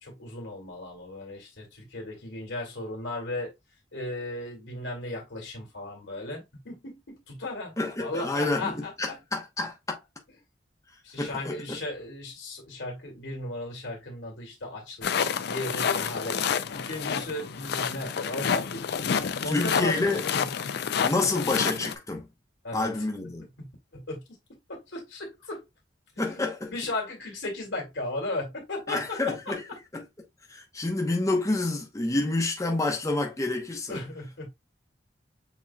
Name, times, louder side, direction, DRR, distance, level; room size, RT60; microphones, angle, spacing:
voice 1, 0.0-3.5 3.9-9.2 11.0-16.4 16.7-20.5 22.6-22.9 23.6-24.2 24.7-25.6 26.2-26.4 26.7-29.6 33.9-34.5, left 2 dB, 90° left, 2.3 m, -36 dB
voice 2, 7.8-10.0 11.2-11.6 19.5-20.2 21.0-22.3 22.7-23.5 26.2-26.7 28.9-29.6 29.9-30.0 30.5-34.0, left 2 dB, 20° left, 0.8 m, -28 dB
sound 1, 15.0-22.0, left 7 dB, 65° left, 0.5 m, -29 dB
7.2 x 2.9 x 2.2 m
head